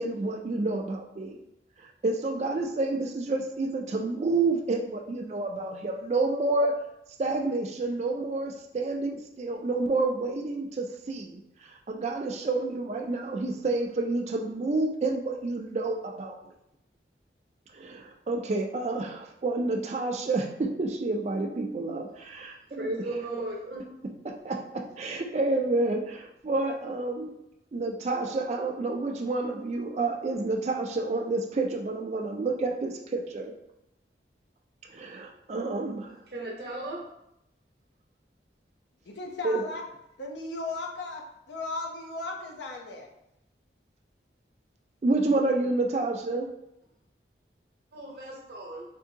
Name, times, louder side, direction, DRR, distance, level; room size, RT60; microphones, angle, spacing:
voice 1, 0.0-1.4 1.8-6.7 7.2-16.4 17.7-22.8 24.2-27.3 27.7-33.5 34.9-36.2 39.4-39.6 45.0-46.5, right 2 dB, 35° right, 3 dB, 0.3 m, -29 dB
voice 2, 22.8-23.8 36.3-37.0 47.9-48.8, right 2 dB, 60° right, -1 dB, 0.8 m, -35 dB
voice 3, 39.1-39.8 40.2-41.2 41.5-43.1, left 3 dB, 80° left, 0 dB, 0.6 m, -36 dB
3.5 x 2.7 x 2.7 m, 0.82 s
head